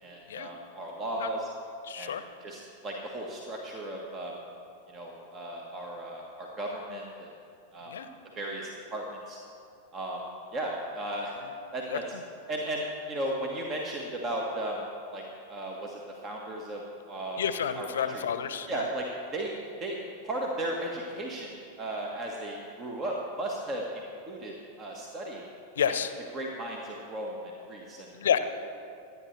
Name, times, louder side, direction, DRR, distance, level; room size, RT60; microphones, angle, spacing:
voice 1, 0.0-1.5 2.0-2.1 2.4-4.3 4.9-7.3 7.7-7.9 8.3-9.4 9.9-10.2 10.5-11.4 11.7-12.0 12.5-14.8 15.1-15.2 15.5-17.4 17.7-18.2 18.7-19.1 19.3-20.0 20.2-21.5 21.8-25.4 25.8-26.0 26.3-28.1, right 1 dB, 25° right, -1 dB, 1.5 m, -35 dB
voice 2, 1.8-2.2 7.8-8.1 11.9-12.0 17.4-18.8 25.8-26.1 28.1-28.4, left 8 dB, 65° left, 11 dB, 0.8 m, -29 dB
25.5 x 9.7 x 3.3 m, 2.5 s
figure-of-eight pair, 90°, 0 cm